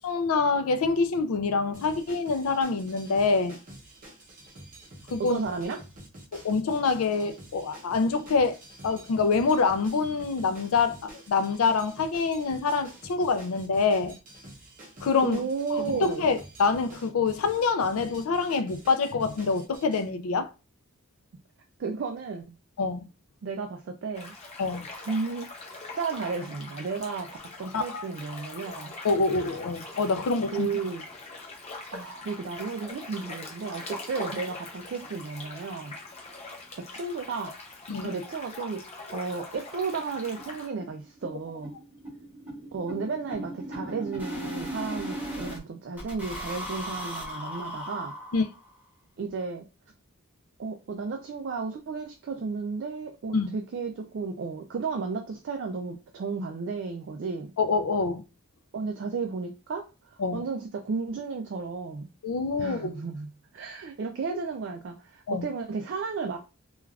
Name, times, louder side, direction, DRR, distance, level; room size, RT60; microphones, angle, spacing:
voice 1, 0.0-3.6 5.1-5.4 6.3-8.6 8.8-14.2 15.0-15.5 15.8-20.5 22.8-23.0 24.6-24.9 27.7-28.1 29.0-30.7 37.9-38.1 48.3-48.4 53.3-53.5 57.6-58.2 60.2-60.4 62.2-62.9 65.3-65.5, left 4 dB, 75° left, 0.4 m, -26 dB
sound 1, 1.7-20.1, right 1 dB, 35° right, 0.7 m, -48 dB
voice 2, 5.2-5.8 15.2-16.3 21.8-22.5 23.4-24.3 25.1-25.5 26.0-28.9 30.5-31.0 31.9-36.0 36.8-37.5 38.0-38.8 39.1-41.7 42.7-48.1 49.2-49.6 50.6-57.5 58.7-59.9 60.3-62.1 62.6-66.4, right 4 dB, 55° right, 0.3 m, -33 dB
sound 2, 24.1-40.7, left 3 dB, 30° left, 0.6 m, -42 dB
sound 3, 40.0-40.1 40.4-45.6 46.0-48.8, equal, 10° right, 0.8 m, -38 dB
3.2 x 2.3 x 2.3 m
head